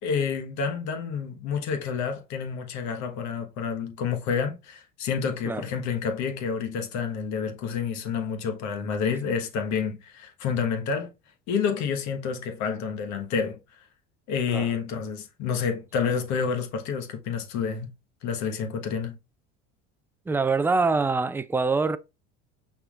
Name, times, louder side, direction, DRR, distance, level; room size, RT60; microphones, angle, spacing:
voice 1, 0.0-11.1 11.5-13.6 14.3-17.9 18.2-19.2, left 6 dB, 60° left, 1.3 m, -29 dB
voice 2, 20.3-22.0, right 4 dB, 5° right, 0.3 m, -24 dB
5.8 x 3.7 x 2.4 m
supercardioid pair, 85°, 31 cm